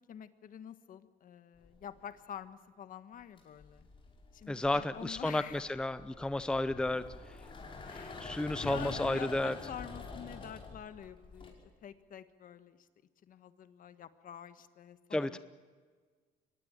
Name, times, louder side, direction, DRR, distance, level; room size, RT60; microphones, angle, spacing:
voice 1, 0.1-3.9 4.3-5.6 7.9-8.2 8.6-12.8 13.2-15.4, left 9 dB, 55° left, 11 dB, 1.5 m, -47 dB
sound 1, 1.6-2.1 3.2-11.5, left 3 dB, 30° left, 5.6 m, -46 dB
voice 2, 4.5-7.0 8.2-9.5 15.1-15.4, left 2 dB, 5° left, 12 dB, 0.7 m, -32 dB
24.0 x 19.5 x 9.0 m, 1.5 s
cardioid pair, 110°, 17 cm